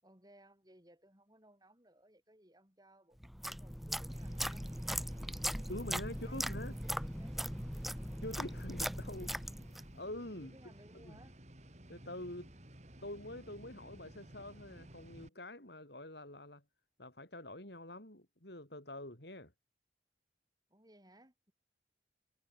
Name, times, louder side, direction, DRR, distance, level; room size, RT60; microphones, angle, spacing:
voice 1, 0.0-4.7 5.3-6.0 6.2-7.5 9.1-9.5 10.4-11.4 20.7-21.5, right 1 dB, 20° right, 6.9 m, -63 dB
sound 1, 3.2-9.9, equal, ahead, 1.2 m, -39 dB
sound 2, 4.1-15.3, right 1 dB, 40° right, 2.8 m, -55 dB
voice 2, 5.7-6.7 8.2-9.3 9.9-10.7 11.0-11.2 11.9-12.5 13.0-16.6 17.0-19.5, left 1 dB, 65° left, 6.5 m, -46 dB
head